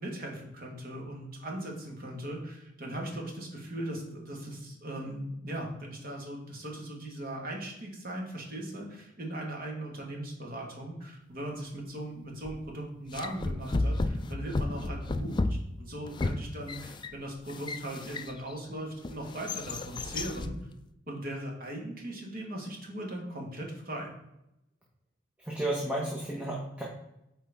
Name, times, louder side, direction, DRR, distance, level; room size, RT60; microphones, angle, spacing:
voice 1, 0.0-20.6 21.1-24.1, right 1 dB, 50° right, 0 dB, 1.6 m, -39 dB
sound 1, 12.4-12.7 13.1-18.6 19.0-20.6, left 2 dB, 25° left, 0.3 m, -33 dB
voice 2, 25.5-26.8, right 1 dB, 5° right, -4 dB, 1.0 m, -32 dB
8.0 x 4.5 x 3.5 m, 0.85 s
head